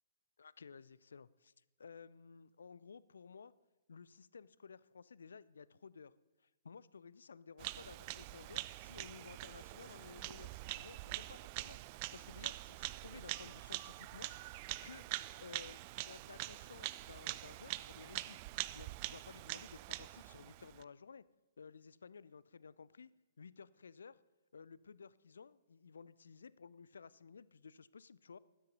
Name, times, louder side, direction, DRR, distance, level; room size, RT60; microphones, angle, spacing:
voice 1, 0.4-1.5 1.8-3.5 3.9-6.1 6.4-15.0 15.4-18.4 18.7-21.2 21.6-23.1 23.4-24.2 24.5-28.4, left 5 dB, 70° left, 20 dB, 0.4 m, -55 dB
Bird vocalization bird call bird song, 7.6-20.8, right 19 dB, 35° right, 0.3 m, -45 dB
12.5 x 9.3 x 5.4 m, 1.1 s
figure-of-eight pair, 120°, 0 cm